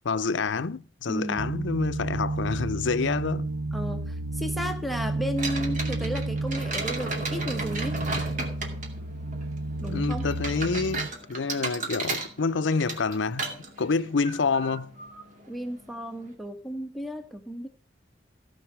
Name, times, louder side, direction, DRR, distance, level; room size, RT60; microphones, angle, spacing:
voice 1, 0.1-3.5 9.9-14.9, left 4 dB, 80° left, 0.6 m, -28 dB
voice 2, 1.1-1.4 3.7-8.0 9.8-10.3 15.5-17.7, equal, ahead, 0.9 m, -34 dB
sound 1, 1.4-11.1, right 2 dB, 60° right, 0.7 m, -31 dB
sound 2, 5.4-16.3, right 3 dB, 40° right, 2.4 m, -36 dB
15.5 x 5.4 x 6.2 m
head